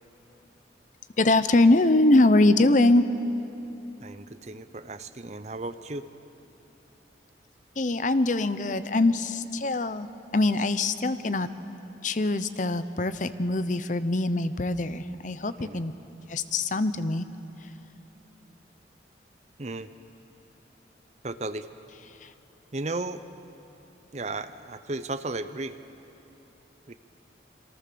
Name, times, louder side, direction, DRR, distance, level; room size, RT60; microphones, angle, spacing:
voice 1, 1.2-3.0 7.8-10.1 10.3-11.5 12.0-15.9 16.3-17.3 17.6-17.7 22.2-22.3, left 2 dB, 45° left, 12 dB, 0.8 m, -23 dB
voice 2, 4.0-6.1 15.6-15.8 19.6-19.9 21.2-21.7 22.7-23.2 24.1-25.8 26.9-27.0, right 2 dB, 35° right, 11 dB, 0.8 m, -34 dB
27.5 x 23.0 x 6.9 m, 3.0 s
head